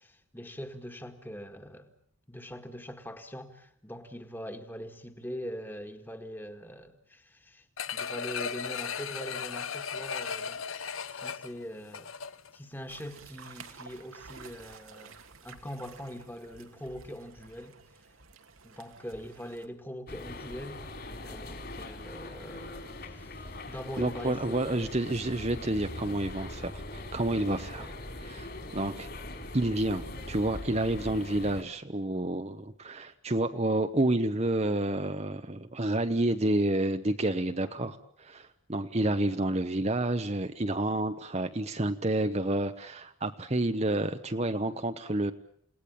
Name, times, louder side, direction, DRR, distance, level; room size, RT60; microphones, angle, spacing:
voice 1, 0.0-1.9 2.3-12.1 12.5-15.2 15.4-17.8 18.6-20.8 21.2-24.9 27.8-27.9 37.6-38.0, equal, 10° left, 1.9 m, -43 dB
sound 1, 7.8-12.6 13.0-13.1, left 6 dB, 85° left, 1.1 m, -36 dB
sound 2, 12.9-19.7, right 5 dB, 90° right, 2.4 m, -51 dB
sound 3, 20.1-31.6, left 1 dB, 50° left, 4.2 m, -41 dB
voice 2, 24.0-27.9 28.2-29.1 29.5-38.0 38.3-45.3, right 1 dB, 30° right, 1.0 m, -29 dB
29.0 x 18.5 x 8.7 m
head